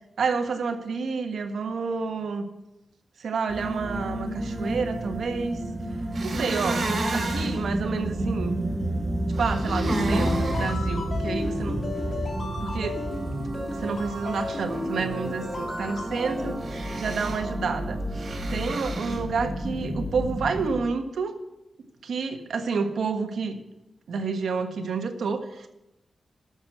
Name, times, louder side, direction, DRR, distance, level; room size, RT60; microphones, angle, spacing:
voice 1, 0.2-2.5 3.2-5.6 6.2-8.6 9.4-11.8 12.6-13.0 13.7-16.6 17.0-18.0 18.5-21.3 22.0-23.6 24.1-25.7, right 5 dB, 85° right, 6 dB, 1.5 m, -29 dB
sound 1, 3.5-20.8, right 1 dB, 15° right, 1.5 m, -31 dB
sound 2, 6.1-7.6 9.3-10.7 16.6-17.4 18.1-19.2, right 2 dB, 55° right, 3.2 m, -31 dB
sound 3, 9.7-16.5, left 2 dB, 40° left, 3.2 m, -33 dB
12.5 x 7.3 x 7.7 m, 0.93 s
wide cardioid pair, 115°, 0 cm